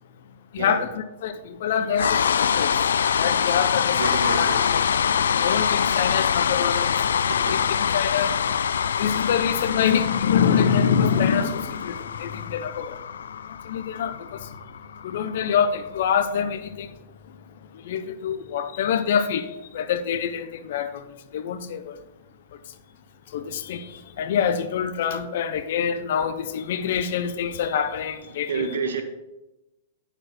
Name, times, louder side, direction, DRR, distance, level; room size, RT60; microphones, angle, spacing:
voice 1, 0.5-2.7 3.2-4.8 5.3-7.2 7.5-8.3 9.0-13.0 13.6-14.5 15.0-16.9 17.8-21.1 21.3-22.0 23.3-23.9 24.2-28.7, left 7 dB, 65° left, 0.9 m, -25 dB
sound 1, 1.9-16.1, left 7 dB, 80° left, 0.4 m, -24 dB
voice 2, 4.0-4.8 7.3-7.7 28.3-29.0, right 5 dB, 75° right, 1.7 m, -30 dB
9.7 x 7.2 x 4.4 m
hypercardioid pair, 120°, 0 cm